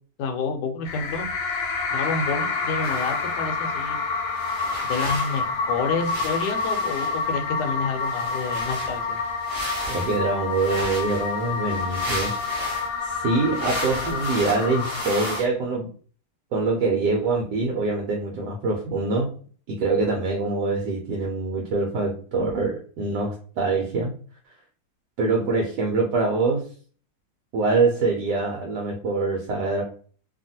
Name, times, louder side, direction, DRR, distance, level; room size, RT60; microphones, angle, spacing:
voice 1, 0.2-1.3 1.9-4.0 4.8-9.2, left 4 dB, 75° left, 5 dB, 1.2 m, -29 dB
sound 1, 0.9-15.4, left 4 dB, 90° left, 1.3 m, -28 dB
sound 2, 2.8-3.3 4.4-5.4 6.0-7.3 8.0-12.9 13.5-15.5, right 1 dB, 40° right, 0.9 m, -35 dB
voice 2, 9.9-12.3 13.0-15.9 16.5-19.3 19.7-24.1 25.2-26.6 27.5-29.8, right 3 dB, 75° right, 0 dB, 1.2 m, -24 dB
2.9 x 2.5 x 2.6 m, 0.43 s
omnidirectional pair, 2.0 m